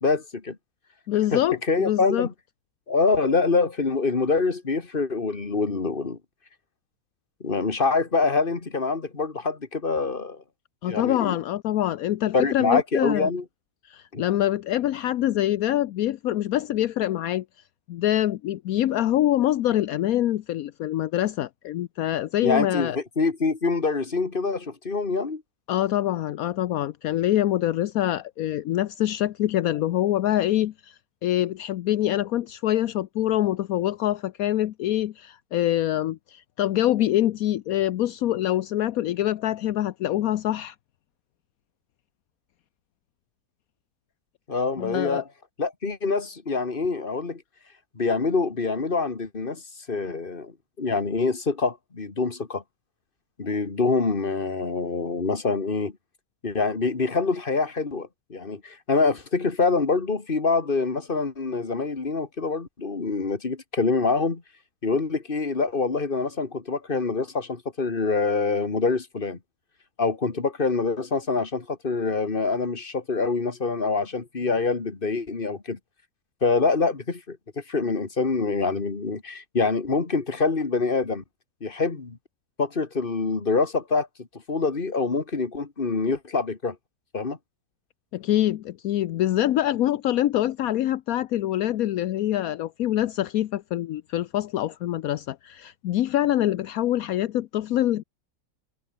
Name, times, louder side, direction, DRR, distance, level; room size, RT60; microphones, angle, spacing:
voice 1, 0.0-0.6 1.3-1.4 1.7-2.3 2.9-6.2 7.4-10.4 10.9-11.4 12.3-13.4 14.1-14.2 22.4-25.4 44.5-45.2 45.6-47.4 48.0-49.6 49.9-52.6 53.4-55.9 56.4-64.4 64.8-69.4 70.0-75.8 76.4-81.2 81.6-82.2 82.6-84.1 84.5-86.8 87.1-87.4, left 4 dB, 35° left, 2.3 m, -25 dB
voice 2, 1.1-2.3 10.8-13.3 13.9-17.4 17.9-23.0 25.7-40.7 44.8-45.2 88.1-98.0, left 13 dB, 75° left, 1.1 m, -25 dB
omnidirectional pair, 1.6 m